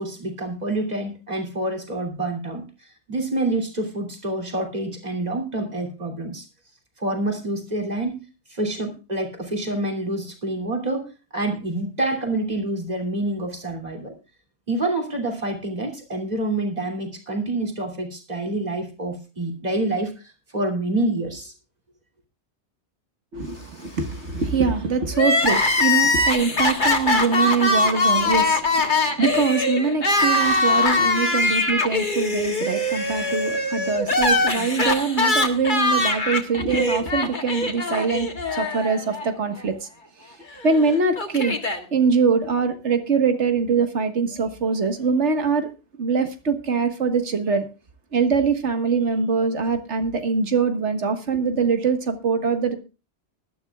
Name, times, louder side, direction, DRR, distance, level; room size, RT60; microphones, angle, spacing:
voice 1, 0.0-6.5 7.0-8.2 8.5-14.2 14.7-21.5, right 2 dB, 35° right, 2 dB, 3.1 m, -27 dB
voice 2, 23.3-39.9 40.6-41.5 41.9-45.7 46.0-47.7 48.1-52.7, right 5 dB, 80° right, 8 dB, 1.8 m, -23 dB
Crying sobbing, 25.1-39.3 39.6-39.7 40.7-41.8, left 2 dB, 45° left, 1.8 m, -22 dB
20.0 x 12.5 x 2.4 m, 0.30 s
omnidirectional pair, 1.2 m